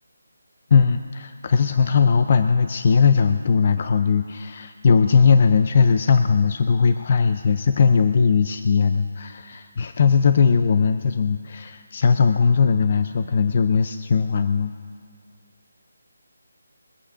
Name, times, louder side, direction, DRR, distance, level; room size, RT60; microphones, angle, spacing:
voice 1, 0.7-14.7, left 5 dB, 25° left, 9 dB, 0.3 m, -19 dB
22.5 x 8.5 x 5.0 m, 2.1 s
hypercardioid pair, 180°, 0 cm